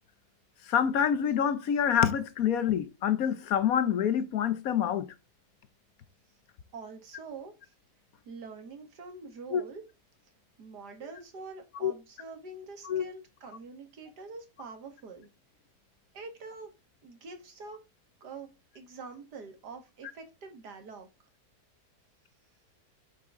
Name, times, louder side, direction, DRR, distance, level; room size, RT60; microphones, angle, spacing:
voice 1, 0.7-5.1 9.5-9.6 11.8-11.9 12.8-13.0, left 8 dB, 65° left, 1.2 m, -26 dB
voice 2, 6.7-7.7 8.3-9.8 10.6-15.3 16.1-16.7 17.0-17.8 18.2-21.1, right 4 dB, 85° right, 2.4 m, -45 dB
8.4 x 6.3 x 3.7 m
omnidirectional pair, 1.7 m